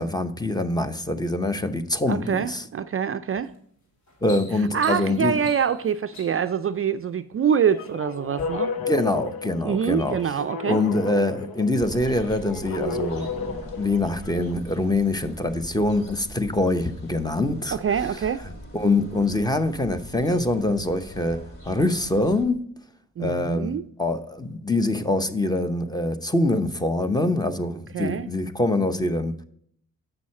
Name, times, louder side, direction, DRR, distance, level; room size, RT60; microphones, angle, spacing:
voice 1, 0.0-2.6 4.2-5.3 8.8-10.4 10.7-17.8 18.7-22.6 23.2-23.7 24.0-29.3, left 2 dB, 10° left, 0.7 m, -24 dB
voice 2, 2.1-3.5 4.7-8.7 9.6-10.8 17.7-18.4 23.2-23.9 27.9-28.3, right 7 dB, 40° right, 0.4 m, -25 dB
sound 1, 3.3-3.6 3.9-6.6 7.4-7.9 8.3-8.4, left 3 dB, 55° left, 2.3 m, -44 dB
sound 2, 7.7-14.5, left 4 dB, 85° left, 1.0 m, -33 dB
sound 3, 11.8-22.5, equal, 30° left, 2.1 m, -43 dB
7.7 x 6.2 x 4.2 m
cardioid pair, 80°, 35 cm